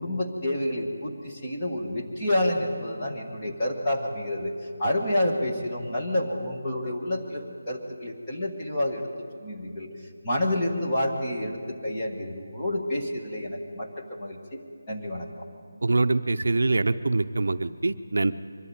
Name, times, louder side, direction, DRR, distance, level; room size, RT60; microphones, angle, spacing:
voice 1, 0.0-9.1 9.4-9.9 10.2-14.6 14.9-15.5, left 1 dB, 10° left, -3 dB, 1.4 m, -29 dB
voice 2, 15.8-18.3, right 3 dB, 60° right, 10 dB, 0.6 m, -24 dB
23.0 x 12.5 x 9.4 m, 2.4 s
figure-of-eight pair, 180°, 0 cm